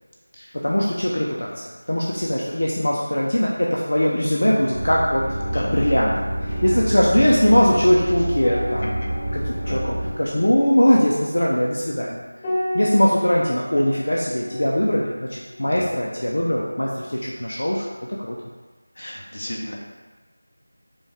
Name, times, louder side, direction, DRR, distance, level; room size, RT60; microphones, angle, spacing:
voice 1, 0.6-1.5 1.9-5.2 5.5-6.1 6.5-8.9 9.3-12.2 12.7-17.8 18.3-18.4, equal, 70° left, -4 dB, 0.6 m, -20 dB
Oven Interior, 4.7-10.1, right 1 dB, 35° right, 1.0 m, -27 dB
voice 2, 5.4-5.8 9.6-9.8 13.9-14.0 15.6-15.9 17.5-17.9 19.0-19.7, left 1 dB, 55° left, -2 dB, 0.9 m, -35 dB
sound 1, 8.4-17.1 17.4-17.6, equal, 15° left, 0.4 m, -34 dB
5.1 x 2.4 x 3.4 m, 1.3 s
figure-of-eight pair, 170°, 0 cm